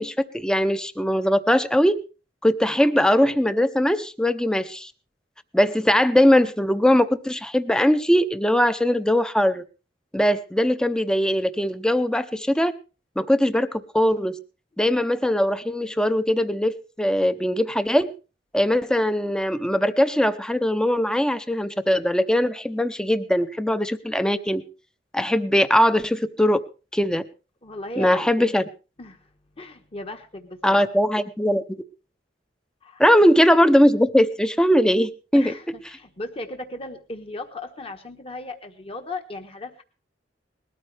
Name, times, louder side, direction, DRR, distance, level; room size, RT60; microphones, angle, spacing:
voice 1, 0.0-2.0 2.4-4.9 5.5-9.6 10.1-12.7 13.2-14.4 14.8-18.1 18.5-24.6 25.1-26.6 26.9-27.2 28.0-28.6 30.6-31.6 33.0-35.5, equal, 5° left, 11 dB, 0.7 m, -20 dB
voice 2, 27.6-28.2 29.0-29.3 29.6-30.9 32.8-33.0 35.3-39.8, left 2 dB, 35° left, 6 dB, 1.3 m, -36 dB
20.0 x 13.5 x 3.4 m, 0.34 s
head